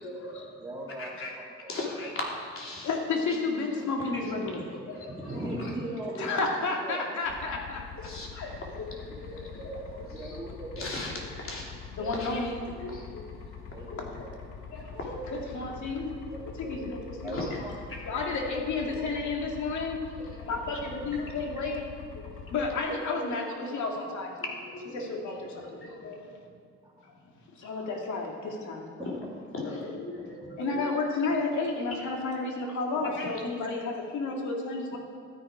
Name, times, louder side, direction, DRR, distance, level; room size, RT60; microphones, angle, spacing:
voice 1, 0.0-0.4 1.0-1.3 1.7-2.9 4.7-5.4 8.0-10.4 10.8-11.7 12.0-12.4 12.8-13.3 13.9-14.3 14.7-15.3 16.3-16.9 17.3-17.6 18.1-18.3 20.4-20.8 22.3-22.4 24.7-26.2 29.5-30.8 33.2-33.3 34.9-35.0, left 2 dB, 45° left, -2 dB, 3.0 m, -39 dB
voice 2, 0.6-2.1 5.1-6.4 6.8-7.0 10.1-11.0 13.7-14.2 16.7-16.9 17.2-17.8 21.0-21.2 22.3-22.4 22.9-23.4 29.0-29.3 30.4-30.5, right 1 dB, 10° right, -7 dB, 2.5 m, -38 dB
voice 3, 2.8-4.7 6.2-8.6 11.9-12.6 14.0-14.1 15.3-16.2 16.5-17.7 18.0-20.0 20.5-21.8 22.5-24.3 24.9-26.0 27.0-27.1 27.6-28.9 30.6-35.0, left 3 dB, 70° left, 1 dB, 2.2 m, -32 dB
sound 1, 7.2-22.8, left 6 dB, 85° left, 1.6 m, -44 dB
13.5 x 9.8 x 4.9 m, 2.3 s
cardioid pair, 90°, 30 cm